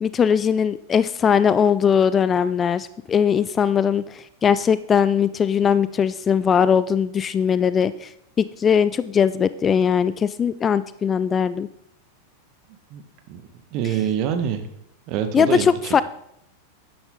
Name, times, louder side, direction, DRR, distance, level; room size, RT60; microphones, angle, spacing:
voice 1, 0.0-8.1 8.4-11.7 15.3-16.0, left 7 dB, 20° left, 16 dB, 0.4 m, -20 dB
voice 2, 12.9-14.7 15.1-16.0, right 9 dB, 40° right, 8 dB, 1.5 m, -26 dB
12.0 x 10.5 x 3.8 m, 0.76 s
figure-of-eight pair, 90°, 0 cm